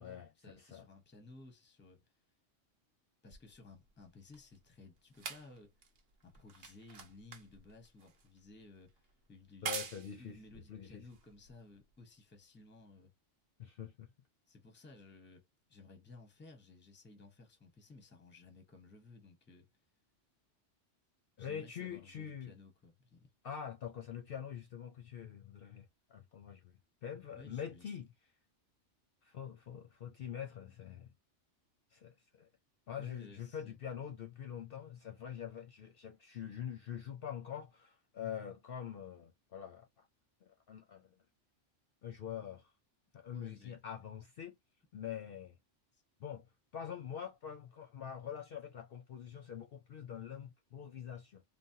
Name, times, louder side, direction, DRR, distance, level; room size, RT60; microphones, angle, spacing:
voice 1, 0.0-2.1 3.2-5.7 6.2-9.7 10.2-13.1 14.5-19.7 21.4-23.3 27.3-27.9 33.0-33.8 43.3-43.8 45.9-46.0, left 3 dB, 10° left, 0.6 m, -57 dB
sound 1, 3.3-11.9 12.8-12.9, right 5 dB, 60° right, 0.9 m, -48 dB
voice 2, 9.6-10.4 10.7-11.0 13.6-14.1 21.4-22.5 23.4-28.1 29.2-31.1 31.9-32.5 32.9-40.1 40.4-41.1 42.0-42.7 43.1-44.5 44.9-45.6 46.2-46.5 46.7-51.4, left 9 dB, 60° left, 0.6 m, -45 dB
3.3 x 2.0 x 2.7 m
omnidirectional pair, 1.2 m